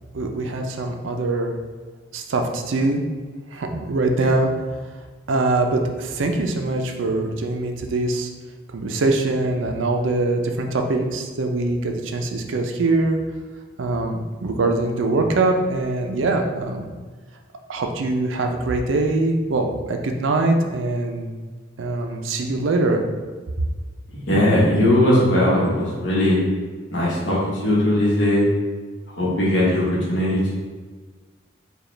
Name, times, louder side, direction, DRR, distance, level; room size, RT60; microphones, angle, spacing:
voice 1, 0.1-1.5 2.1-3.0 3.5-4.5 5.3-8.3 8.7-13.2 13.8-16.9 17.7-21.3 21.8-23.0, right 2 dB, 90° right, 4 dB, 0.5 m, -23 dB
voice 2, 24.3-26.4 26.9-28.4 29.2-29.8 30.1-30.4, left 1 dB, 70° left, -6 dB, 1.2 m, -19 dB
4.8 x 2.3 x 3.2 m, 1.4 s
head